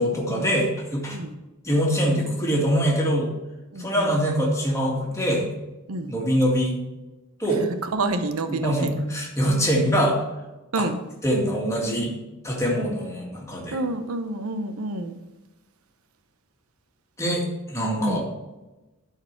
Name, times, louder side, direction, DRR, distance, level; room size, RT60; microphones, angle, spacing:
voice 1, 0.0-1.2 1.6-3.3 3.8-5.5 6.1-6.8 7.4-7.7 8.5-10.2 10.8-10.9 11.2-12.1 12.4-13.8 17.2-18.2, equal, 15° left, -2 dB, 2.1 m, -23 dB
voice 2, 3.7-4.1 5.9-6.1 7.9-8.9 10.7-11.0 13.7-15.2 18.0-18.2, right 2 dB, 90° right, 9 dB, 0.8 m, -28 dB
12.5 x 4.6 x 4.7 m, 1.1 s
head